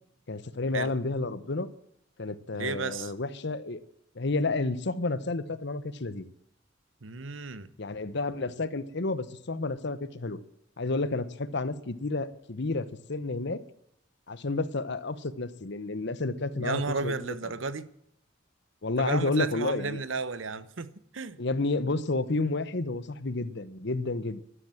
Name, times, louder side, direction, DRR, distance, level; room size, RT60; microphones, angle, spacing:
voice 1, 0.3-1.7 2.2-3.8 4.1-6.3 7.8-10.4 10.8-13.6 14.3-17.5 18.8-20.0 21.4-24.4, left 3 dB, 60° left, 15 dB, 1.0 m, -31 dB
voice 2, 2.6-3.1 7.0-7.7 16.6-17.9 19.0-21.4, right 4 dB, 80° right, 15 dB, 1.0 m, -33 dB
13.0 x 11.5 x 7.7 m, 0.73 s
head